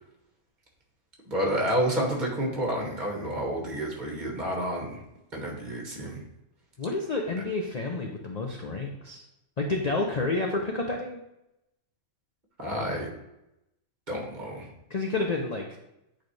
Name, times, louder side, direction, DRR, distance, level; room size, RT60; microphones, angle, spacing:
voice 1, 1.3-5.0 5.3-6.2 12.6-13.1 14.1-14.7, equal, 35° right, -1 dB, 1.6 m, -29 dB
voice 2, 6.8-9.2 9.6-11.2 14.9-15.6, left 3 dB, 40° left, 1 dB, 0.6 m, -29 dB
8.5 x 4.1 x 3.2 m, 0.87 s
omnidirectional pair, 1.4 m